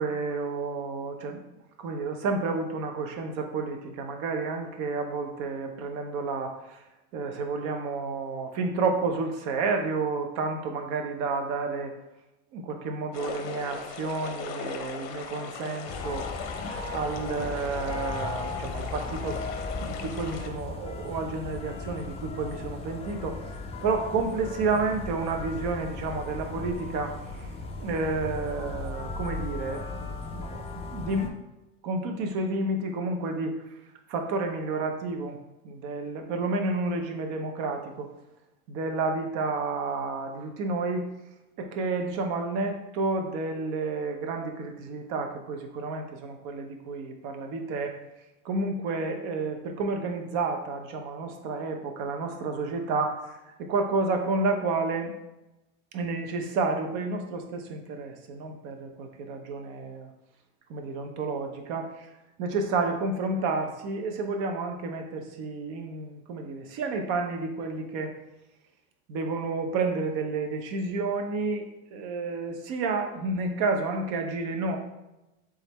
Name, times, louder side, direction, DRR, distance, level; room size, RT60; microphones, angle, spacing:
voice 1, 0.0-1.4 1.8-6.8 7.1-11.9 12.5-16.3 16.6-19.4 19.7-23.4 23.8-27.1 27.8-31.4 31.8-33.6 34.1-35.4 35.6-38.1 38.7-41.0 41.6-47.9 48.4-55.1 55.9-60.1 60.7-62.1 62.4-68.1 69.1-71.7 71.9-74.8, right 3 dB, 60° right, 4 dB, 0.8 m, -30 dB
sound 1, 13.1-20.5, left 6 dB, 55° left, 0.7 m, -39 dB
sound 2, 15.9-31.3, left 3 dB, 20° left, 0.4 m, -36 dB
3.5 x 3.5 x 4.1 m, 0.97 s
cardioid pair, 140°, 33 cm